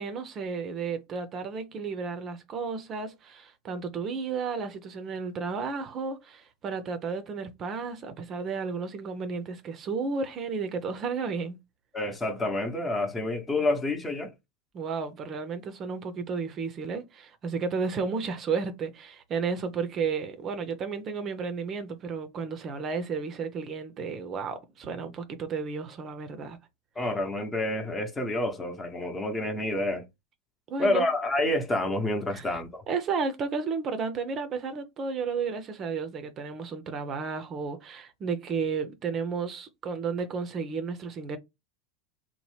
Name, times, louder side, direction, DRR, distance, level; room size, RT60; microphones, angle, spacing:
voice 1, 0.0-11.6 14.7-26.6 30.7-31.1 32.3-32.6 32.9-41.4, right 5 dB, 40° right, 0.5 m, -33 dB
voice 2, 11.9-14.3 27.0-30.0 30.8-32.8, left 1 dB, 20° left, 0.8 m, -28 dB
2.9 x 2.1 x 3.1 m
hypercardioid pair, 95°, 0 cm